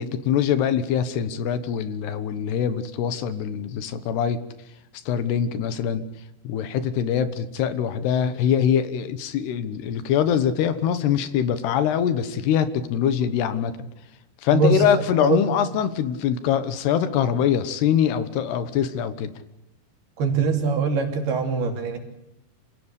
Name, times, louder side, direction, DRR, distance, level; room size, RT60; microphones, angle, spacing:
voice 1, 0.0-4.4 5.1-6.0 6.4-13.9 14.4-19.3, left 8 dB, 75° left, 12 dB, 3.3 m, -23 dB
voice 2, 14.5-14.9 15.2-15.4 20.2-22.0, right 5 dB, 65° right, 3 dB, 4.9 m, -22 dB
27.5 x 16.5 x 8.2 m, 0.86 s
omnidirectional pair, 4.8 m